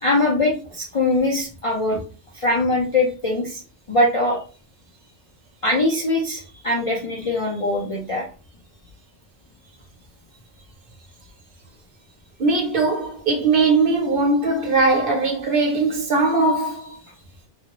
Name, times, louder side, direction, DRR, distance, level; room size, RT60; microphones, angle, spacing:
voice 1, 0.0-2.0 2.3-3.6 3.9-4.4 5.6-8.3, left 2 dB, 50° left, 0.4 m, -22 dB
voice 2, 12.4-17.0, right 3 dB, 55° right, 0.8 m, -20 dB
2.3 x 2.0 x 2.9 m
omnidirectional pair, 1.1 m